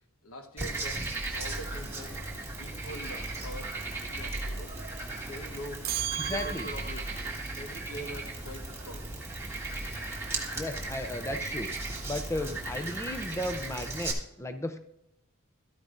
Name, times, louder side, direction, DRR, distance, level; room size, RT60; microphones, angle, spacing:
voice 1, 0.2-1.0 1.3-2.2 2.6-3.7 4.1-4.7 5.3-9.1, equal, 85° left, 6 dB, 1.2 m, -44 dB
Frog, 0.6-14.1, right 2 dB, 10° right, 1.6 m, -36 dB
sound 1, 5.8-7.2, right 11 dB, 45° right, 0.4 m, -35 dB
voice 2, 6.1-6.7 10.5-11.7 12.1-14.8, left 1 dB, 15° left, 8 dB, 0.5 m, -35 dB
13.0 x 9.8 x 2.6 m, 0.80 s
head